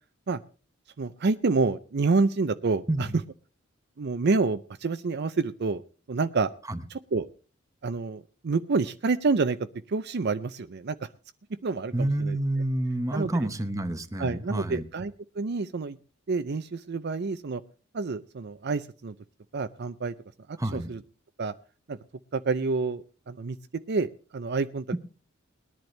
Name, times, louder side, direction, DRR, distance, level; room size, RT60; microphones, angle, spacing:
voice 1, 1.0-3.1 4.0-5.8 6.1-6.5 6.9-7.3 7.8-9.6 9.9-11.0 11.6-12.4 13.1-13.3 14.2-16.0 16.3-17.6 17.9-19.1 19.5-20.1 20.7-21.0 21.4-21.5 21.9-22.0 22.3-23.6 23.9-24.8, right 4 dB, 50° right, 10 dB, 0.5 m, -28 dB
voice 2, 11.9-14.8 20.6-20.9 24.9-25.0, right 1 dB, 15° right, 9 dB, 0.9 m, -28 dB
20.0 x 10.5 x 3.3 m, 0.36 s
head